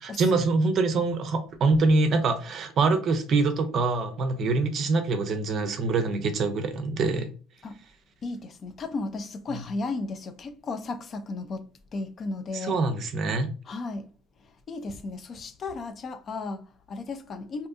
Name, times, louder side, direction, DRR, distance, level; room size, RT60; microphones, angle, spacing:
voice 1, 0.0-7.3 12.5-13.5, right 3 dB, 50° right, 0.5 m, -24 dB
voice 2, 8.2-12.8 13.7-14.1 14.7-17.7, left 3 dB, 40° left, 0.3 m, -34 dB
2.6 x 2.4 x 2.3 m
supercardioid pair, 105°, 0 cm